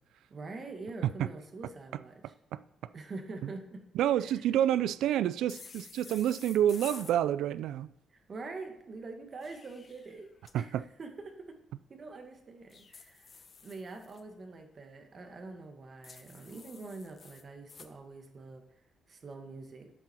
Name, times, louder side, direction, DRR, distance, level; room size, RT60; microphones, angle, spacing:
voice 1, 0.3-2.3 2.9-3.8 4.2-4.5 8.1-11.6 11.9-13.3 13.6-18.6 19.1-19.9, right 3 dB, 35° right, 1.7 m, -45 dB
voice 2, 3.9-7.9 10.5-10.8, right 11 dB, 85° right, 0.4 m, -28 dB
sound 1, 5.5-7.2 9.2-10.5 12.7-14.2 16.0-17.9, left 5 dB, 35° left, 0.9 m, -51 dB
12.0 x 7.8 x 4.4 m
cardioid pair, 125°, 0 cm